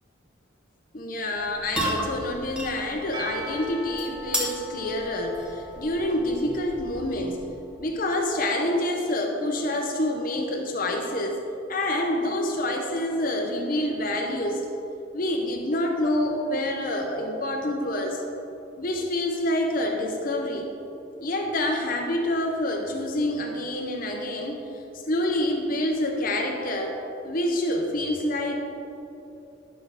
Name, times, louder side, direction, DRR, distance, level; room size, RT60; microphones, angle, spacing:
voice 1, 0.9-7.4 7.8-11.4 11.7-14.6 15.1-18.2 18.8-20.7 21.2-24.6 25.1-27.0 27.2-28.6, left 1 dB, 45° left, 2 dB, 0.7 m, -27 dB
sound 1, 1.3-7.7, equal, 5° right, 1.2 m, -35 dB
Percussion / Church bell, 3.1-7.9, equal, 20° right, 0.7 m, -42 dB
11.5 x 6.2 x 4.8 m, 3.0 s
head